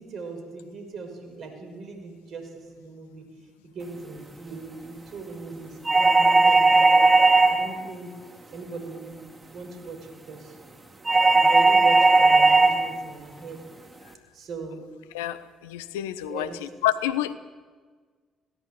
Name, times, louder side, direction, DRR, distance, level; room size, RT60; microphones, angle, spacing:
voice 1, 0.0-3.3 3.6-8.1 8.5-9.2 9.5-10.6 11.1-13.6 14.3-14.8 16.2-16.7, right 3 dB, 60° right, 5 dB, 5.8 m, -39 dB
sound 1, 5.9-7.8 11.1-12.9, right 3 dB, 25° right, 2.7 m, -17 dB
voice 2, 15.7-16.5 16.8-17.3, left 13 dB, 80° left, 14 dB, 1.0 m, -27 dB
21.5 x 17.0 x 8.6 m, 1.5 s
hypercardioid pair, 45°, 0 cm